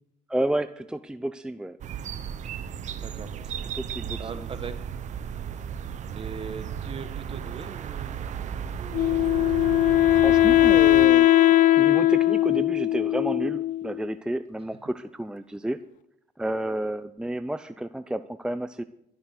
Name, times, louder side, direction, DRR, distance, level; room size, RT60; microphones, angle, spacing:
voice 1, 0.3-1.8 3.7-4.5 10.1-11.3 11.7-15.8 16.4-18.8, right 1 dB, 5° right, 11 dB, 0.6 m, -31 dB
sound 1, 1.8-11.1, right 8 dB, 55° right, 1.1 m, -35 dB
voice 2, 3.0-3.7 4.2-5.1 6.1-8.2, right 5 dB, 40° right, 9 dB, 1.8 m, -40 dB
Wind instrument woodwind instrument, 8.8-13.3, right 2 dB, 20° right, 5.6 m, -39 dB
Wind instrument woodwind instrument 2, 8.9-14.0, left 15 dB, 60° left, 0.5 m, -19 dB
13.0 x 11.5 x 6.7 m, 0.81 s
supercardioid pair, 85°, 15 cm